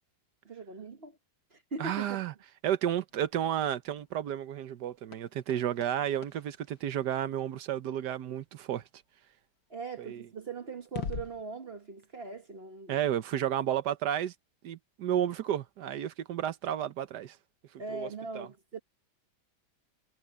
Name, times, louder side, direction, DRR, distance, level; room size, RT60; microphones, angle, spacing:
voice 1, 0.4-1.2 1.5-2.2 9.7-13.0 17.8-18.8, right 4 dB, 35° right, 1.5 m, -41 dB
voice 2, 1.8-2.3 2.6-8.8 10.0-10.2 12.9-14.3 14.6-17.4 17.9-18.1 18.3-18.5, right 10 dB, 75° right, 1.4 m, -32 dB
sound 1, 3.1-7.8 10.0-10.1 10.8-11.4, left 6 dB, 75° left, 1.9 m, -44 dB
omnidirectional pair, 1.8 m